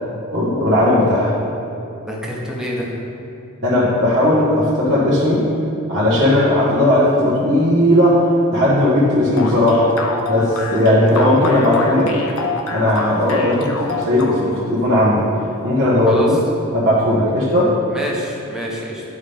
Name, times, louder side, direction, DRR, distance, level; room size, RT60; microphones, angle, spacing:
voice 1, 0.3-1.3 3.6-5.4 5.9-8.2 8.5-9.9 10.3-12.1 12.7-15.2 15.6-16.4 16.7-17.7, left 1 dB, 55° right, -10 dB, 1.3 m, -16 dB
voice 2, 2.1-2.9 16.1-16.3 17.9-19.0, equal, 5° right, -4 dB, 1.0 m, -27 dB
sound 1, 9.4-14.7, left 4 dB, 75° left, 0.8 m, -27 dB
9.6 x 5.6 x 3.5 m, 2.8 s
head